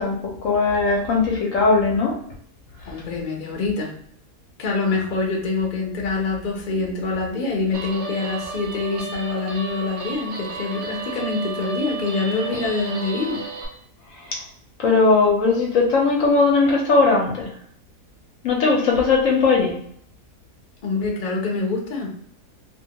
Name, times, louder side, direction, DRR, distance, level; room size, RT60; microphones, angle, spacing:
voice 1, 0.0-2.2 14.2-14.4 14.8-17.5 18.4-19.7, left 4 dB, 65° left, -1 dB, 0.9 m, -19 dB
voice 2, 2.9-3.9 4.6-13.4 20.8-22.1, left 3 dB, 50° left, 0 dB, 0.5 m, -25 dB
Guitar, 7.7-13.7, right 3 dB, 55° right, 0.5 m, -33 dB
2.8 x 2.2 x 2.7 m, 0.64 s
omnidirectional pair, 1.7 m